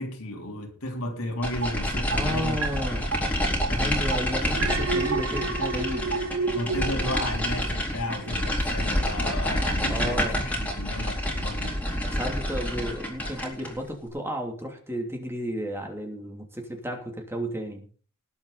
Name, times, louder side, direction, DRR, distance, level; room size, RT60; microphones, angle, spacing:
voice 1, 0.0-3.1 3.7-4.0 4.9-5.1 6.5-11.8, left 1 dB, 75° left, 3.5 m, -34 dB
sound 1, 1.4-13.8, equal, 5° left, 4.0 m, -28 dB
sound 2, 1.6-1.7 2.1-2.2 2.6-2.7 3.1-3.2 3.6-3.7 4.1-4.2 4.6-4.7 5.1-5.2 5.6-5.7 6.1-6.2, right 5 dB, 85° right, 2.1 m, -27 dB
voice 2, 2.1-3.0 3.8-6.1 9.9-10.4 12.1-17.8, equal, 10° right, 3.0 m, -33 dB
Alarm, 4.5-7.9 8.2-8.6, right 4 dB, 65° right, 1.5 m, -31 dB
19.5 x 8.5 x 4.2 m
head